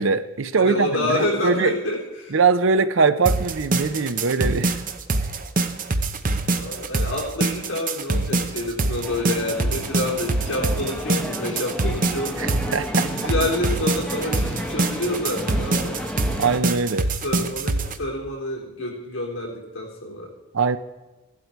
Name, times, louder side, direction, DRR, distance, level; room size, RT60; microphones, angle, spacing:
voice 1, 0.0-1.7 2.3-4.8 12.4-13.1 16.4-17.1 20.5-20.8, right 4 dB, 65° right, 13 dB, 0.7 m, -22 dB
voice 2, 0.6-2.4 6.5-12.6 12.9-16.0 17.2-20.3, left 1 dB, 70° left, -1 dB, 3.9 m, -28 dB
sound 1, 3.3-18.0, right 2 dB, 40° right, 0.9 m, -24 dB
sound 2, 9.0-16.6, equal, 5° left, 1.3 m, -32 dB
15.5 x 12.0 x 4.6 m, 1.2 s
head